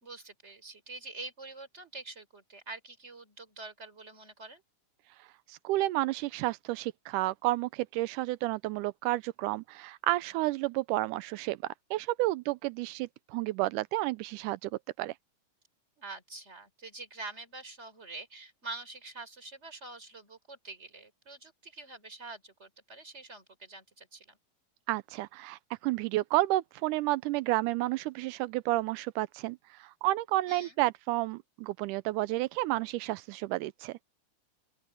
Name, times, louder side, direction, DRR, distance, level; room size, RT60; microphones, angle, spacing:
voice 1, 0.0-4.6 16.0-24.4 30.5-30.8, right 3 dB, 20° right, 4.2 m, -46 dB
voice 2, 5.5-11.6 11.9-14.7 15.0-15.1 24.9-34.0, right 18 dB, 85° right, 2.1 m, -31 dB
open air
omnidirectional pair, 3.6 m